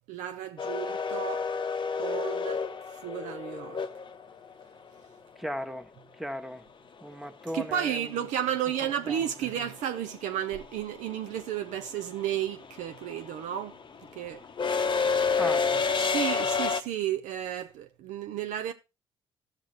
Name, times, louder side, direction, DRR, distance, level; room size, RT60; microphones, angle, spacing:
voice 1, 0.1-1.5 2.0-2.6 3.0-3.8 7.5-13.8 14.1-14.4 16.0-18.7, right 10 dB, 70° right, 0.7 m, -32 dB
sound 1, 0.6-4.6 7.1-7.2 8.4-8.8 9.0-16.8, left 5 dB, 35° left, 0.8 m, -29 dB
voice 2, 5.4-6.6 7.0-8.1 8.8-9.5 15.3-15.7, equal, ahead, 1.2 m, -37 dB
14.0 x 6.3 x 3.1 m
hypercardioid pair, 45°, 13 cm